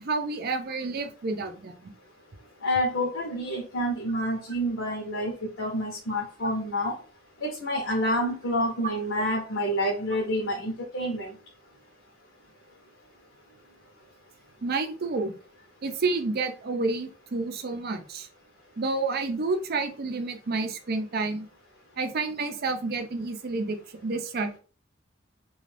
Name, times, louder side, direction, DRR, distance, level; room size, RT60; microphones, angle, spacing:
voice 1, 0.0-1.9 14.6-15.3 15.8-18.3 18.8-21.5 22.0-23.8 24.0-24.6, right 3 dB, 50° right, 7 dB, 0.5 m, -29 dB
voice 2, 2.6-7.0 7.4-11.3, equal, 75° left, 0 dB, 0.7 m, -28 dB
2.5 x 2.3 x 3.2 m, 0.36 s
head